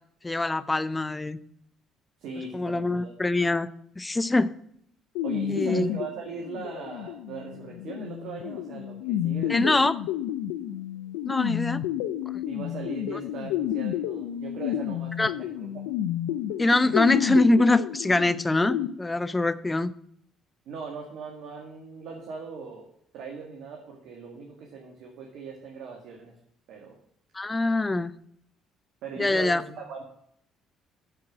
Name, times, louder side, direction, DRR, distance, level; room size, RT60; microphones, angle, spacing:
voice 1, 0.2-1.4 2.5-3.7 4.0-4.5 5.5-5.9 9.5-9.9 11.2-11.8 15.2-15.3 16.6-19.9 27.3-28.1 29.2-29.6, left 2 dB, 20° left, 16 dB, 0.6 m, -24 dB
voice 2, 2.2-3.1 5.2-9.8 12.5-15.8 20.7-22.9 23.1-26.3 26.7-27.0 29.0-30.0, right 5 dB, 75° right, 0 dB, 1.8 m, -39 dB
sound 1, 5.2-18.9, left 11 dB, 90° left, 0.5 m, -31 dB
8.8 x 4.7 x 7.3 m, 0.69 s
supercardioid pair, 70°, 0 cm